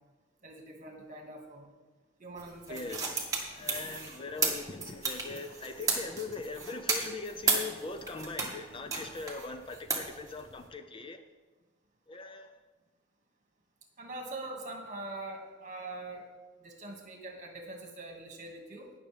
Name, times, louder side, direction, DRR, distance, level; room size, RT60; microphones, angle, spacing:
voice 1, 0.4-1.8 2.2-3.0 14.0-16.3 16.6-18.9, right 2 dB, 40° right, 1 dB, 2.0 m, -43 dB
sound 1, 2.4-8.5 8.9-10.7, right 4 dB, 20° right, 1.6 m, -33 dB
voice 2, 2.7-11.2 12.1-12.6, left 3 dB, 30° left, 7 dB, 0.5 m, -41 dB
19.0 x 6.6 x 3.4 m, 1.3 s
head